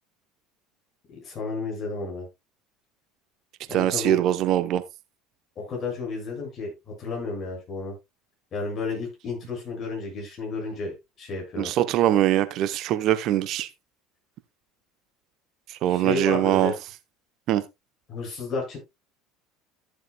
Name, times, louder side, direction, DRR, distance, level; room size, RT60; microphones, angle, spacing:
voice 1, 1.1-2.3 3.7-4.2 5.6-7.9 8.5-11.7 15.9-16.8 18.1-18.8, left 4 dB, 45° left, 7.1 m, -32 dB
voice 2, 3.7-4.8 11.6-13.7 15.7-16.7 17.5-17.6, right 12 dB, 55° right, 0.8 m, -22 dB
13.5 x 7.5 x 2.3 m
hypercardioid pair, 70°, 0 cm